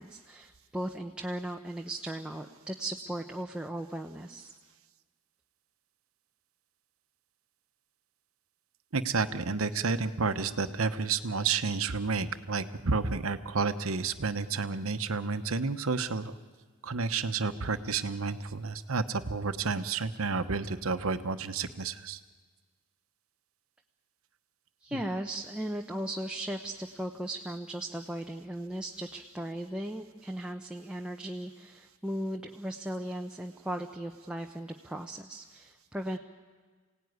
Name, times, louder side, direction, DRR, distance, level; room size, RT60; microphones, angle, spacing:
voice 1, 0.0-4.5 24.8-36.2, right 1 dB, 5° right, 2 dB, 0.8 m, -37 dB
voice 2, 8.9-16.3 16.8-22.2 24.9-25.0, right 4 dB, 75° right, 10 dB, 1.0 m, -30 dB
27.5 x 17.5 x 9.5 m, 1.5 s
head